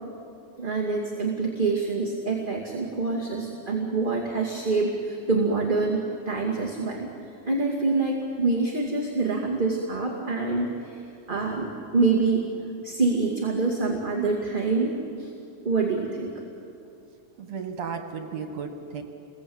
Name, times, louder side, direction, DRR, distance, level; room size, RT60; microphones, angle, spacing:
voice 1, 0.6-7.1 7.5-11.0 11.3-12.4 12.8-15.3 15.6-16.3, right 3 dB, 20° right, -2 dB, 2.2 m, -26 dB
voice 2, 17.4-19.0, right 6 dB, 60° right, 4 dB, 2.9 m, -34 dB
29.5 x 22.0 x 8.8 m, 2.7 s
omnidirectional pair, 3.4 m